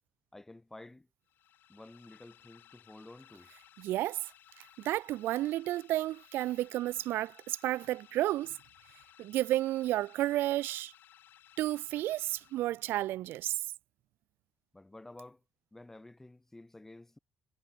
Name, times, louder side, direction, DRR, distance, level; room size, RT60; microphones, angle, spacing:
voice 1, 0.3-1.1 1.7-3.5 14.7-15.4 15.7-17.2, left 2 dB, 10° left, 6.0 m, -51 dB
sound 1, 1.3-13.1, left 12 dB, 65° left, 4.0 m, -60 dB
voice 2, 3.8-4.3 4.8-8.6 9.2-10.9 11.6-13.6, right 15 dB, 80° right, 0.5 m, -32 dB
cardioid pair, 135°, 4 cm